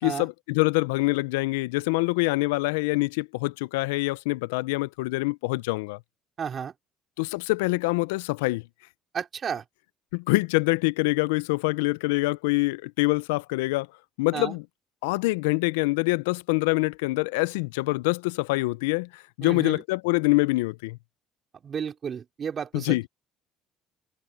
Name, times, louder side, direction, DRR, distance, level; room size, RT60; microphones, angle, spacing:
voice 1, 0.0-6.0 7.2-8.6 10.1-13.9 14.2-14.6 15.0-21.0 22.7-23.0, left 24 dB, 85° left, 0.6 m, -25 dB
voice 2, 6.4-6.7 9.1-9.6 14.3-14.6 19.4-19.8 21.6-23.0, right 7 dB, 45° right, 4.6 m, -32 dB
hypercardioid pair, 65°, 0 cm